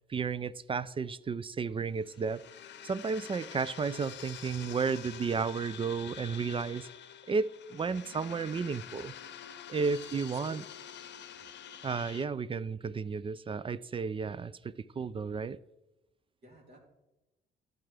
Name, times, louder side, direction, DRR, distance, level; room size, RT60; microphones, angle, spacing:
voice 1, 0.1-2.4 2.8-6.9 7.3-9.1 9.7-10.6 11.8-15.6, right 5 dB, 25° right, 0.4 m, -33 dB
sound 1, 2.0-12.2, left 9 dB, 65° left, 0.7 m, -47 dB
voice 2, 9.7-10.6 12.3-12.6 16.4-16.8, equal, 55° right, 3.2 m, -56 dB
12.0 x 8.9 x 3.4 m
cardioid pair, 90°, 20 cm